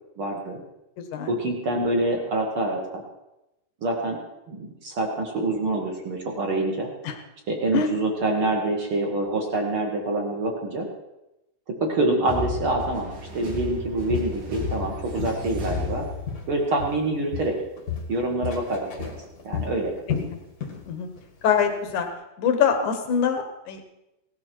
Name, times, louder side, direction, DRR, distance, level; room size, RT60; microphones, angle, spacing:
voice 1, 0.2-0.6 1.3-3.0 3.8-4.2 4.5-6.9 7.5-10.9 11.8-16.0 16.5-17.5 18.1-19.1 19.4-19.9, right 2 dB, 60° right, 1 dB, 1.4 m, -26 dB
voice 2, 1.0-1.4 7.0-7.2 7.7-7.9 20.8-21.1 21.4-22.1 22.4-23.8, left 7 dB, 70° left, 5 dB, 1.9 m, -24 dB
sound 1, 12.3-16.7, left 3 dB, 90° right, 6.4 m, -33 dB
Walk footsteps, 13.5-13.7 14.1-15.5 15.8-17.1 17.3-20.9 21.2-21.4 21.9-22.0, left 7 dB, 50° left, 1.1 m, -33 dB
18.0 x 13.0 x 4.5 m, 0.93 s
omnidirectional pair, 5.0 m